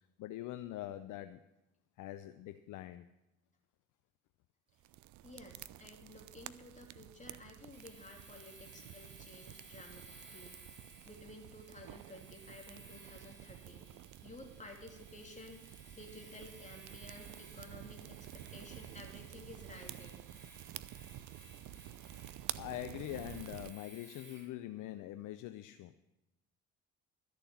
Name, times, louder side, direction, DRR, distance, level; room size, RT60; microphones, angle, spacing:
voice 1, 0.2-1.4 2.0-3.0 22.6-25.9, left 14 dB, 55° left, 11 dB, 0.6 m, -43 dB
sound 1, 4.8-23.7, right 14 dB, 50° right, 0.5 m, -50 dB
voice 2, 5.2-20.2, left 1 dB, 20° left, 1 dB, 3.1 m, -54 dB
Domestic sounds home sounds, 7.7-24.5, right 3 dB, 30° right, 2.7 m, -58 dB
13.0 x 6.8 x 7.2 m, 0.94 s
hypercardioid pair, 55°, 39 cm